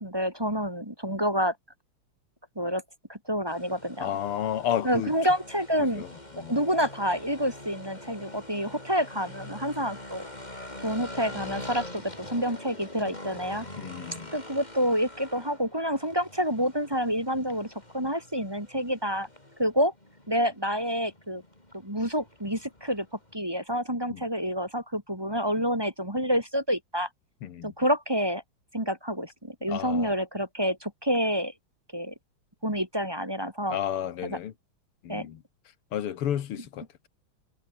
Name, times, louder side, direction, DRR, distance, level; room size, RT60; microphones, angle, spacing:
voice 1, 0.0-1.5 2.5-2.8 3.1-4.1 4.8-6.0 6.5-10.3 10.8-13.7 14.3-19.3 19.6-19.9 20.3-21.4 21.8-23.1 23.3-27.1 27.6-28.4 28.7-31.5 31.9-32.1 32.6-33.8 34.2-34.4 35.1-35.3, equal, 10° right, 3.2 m, -28 dB
sound 1, 3.5-23.3, left 1 dB, 20° left, 5.3 m, -44 dB
voice 2, 4.0-5.1 5.8-6.1 6.3-6.6 13.8-14.3 24.1-24.2 27.4-27.7 29.7-30.1 33.7-34.5 35.0-35.4 35.9-37.1, left 10 dB, 90° left, 2.3 m, -32 dB
omnidirectional pair, 2.4 m